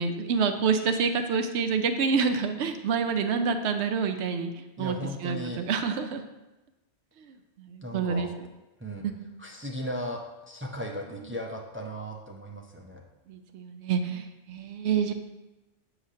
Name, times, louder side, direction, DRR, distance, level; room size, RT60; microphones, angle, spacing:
voice 1, 0.0-4.5 4.8-5.0 5.2-6.2 7.6-8.3 9.0-9.2 13.3-15.1, right 5 dB, 70° right, 7 dB, 0.8 m, -27 dB
voice 2, 4.8-5.6 7.8-8.3 8.8-9.1 9.4-13.0, equal, 20° right, 0 dB, 0.3 m, -36 dB
7.5 x 4.9 x 2.8 m, 1.1 s
omnidirectional pair, 1.2 m